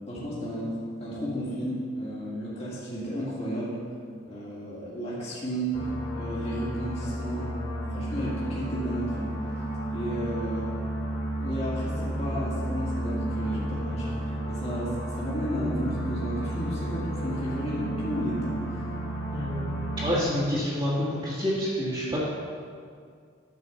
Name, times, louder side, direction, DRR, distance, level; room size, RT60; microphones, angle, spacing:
voice 1, 0.1-0.7 1.0-3.8 4.2-5.9 6.1-7.5 7.9-9.4 9.9-10.7 11.4-14.1 14.5-18.8, equal, 30° left, -8 dB, 2.3 m, -33 dB
sound 1, 5.7-20.1, right 1 dB, 75° left, 1.8 m, -32 dB
voice 2, 19.3-22.2, equal, 20° right, -9 dB, 1.9 m, -28 dB
10.5 x 4.9 x 6.9 m, 2.1 s
head